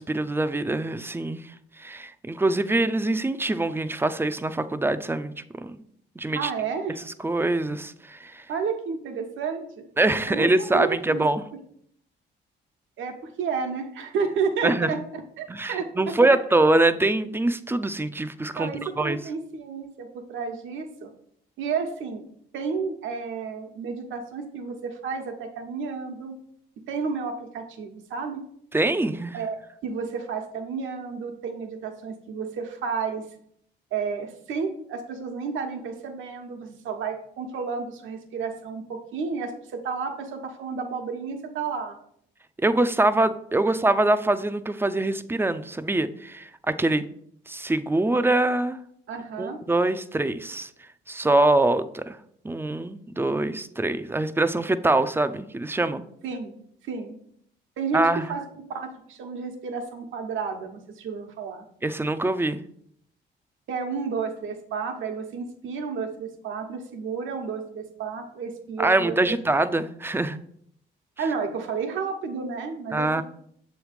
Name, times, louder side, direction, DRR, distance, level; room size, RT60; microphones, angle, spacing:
voice 1, 0.0-1.4 1.8-5.7 6.2-6.5 7.2-8.4 10.0-11.4 14.6-14.9 15.5-18.7 19.0-19.2 28.7-29.4 42.6-47.0 47.5-48.8 49.4-50.7 51.1-52.2 52.4-56.0 57.9-58.3 61.8-62.6 68.8-70.4 72.9-73.2, right 2 dB, 10° right, 12 dB, 0.4 m, -24 dB
voice 2, 6.3-7.0 8.5-9.9 10.3-11.2 13.0-16.1 18.5-21.1 21.6-22.2 22.5-26.4 26.9-28.4 29.3-33.2 33.9-42.0 49.1-49.6 56.2-56.5 56.8-57.1 57.8-58.4 58.7-61.7 63.7-69.4 71.2-73.2, right 5 dB, 80° right, 4 dB, 1.1 m, -31 dB
7.1 x 3.2 x 5.0 m, 0.68 s
cardioid pair, 90°, 20 cm